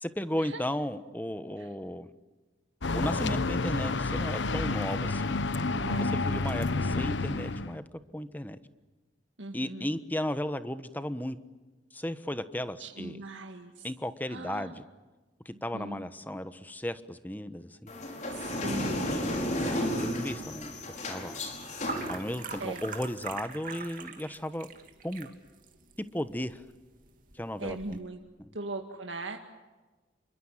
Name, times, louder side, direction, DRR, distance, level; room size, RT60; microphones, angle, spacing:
voice 1, 0.0-2.1 2.9-5.4 5.9-7.8 8.1-8.6 9.5-11.4 11.9-13.2 13.8-14.8 15.4-17.9 19.5-20.7 21.1-21.4 22.1-24.7 25.0-25.3 26.1-26.6 27.3-28.0 28.4-28.6, left 1 dB, 10° left, 12 dB, 1.2 m, -35 dB
sound 1, 2.8-7.8, left 3 dB, 75° left, 1.0 m, -29 dB
voice 2, 5.7-6.7 9.4-9.9 12.8-13.9 14.3-14.8 15.5-16.0 18.3-19.3 19.5-20.2 22.6-22.8 27.6-28.2 28.5-29.4, right 2 dB, 90° right, 3 dB, 2.1 m, -40 dB
sound 2, 17.9-23.1, left 1 dB, 40° left, 5.0 m, -33 dB
sound 3, 19.3-28.0, right 5 dB, 45° right, 2.9 m, -45 dB
29.0 x 24.5 x 7.5 m, 1.2 s
head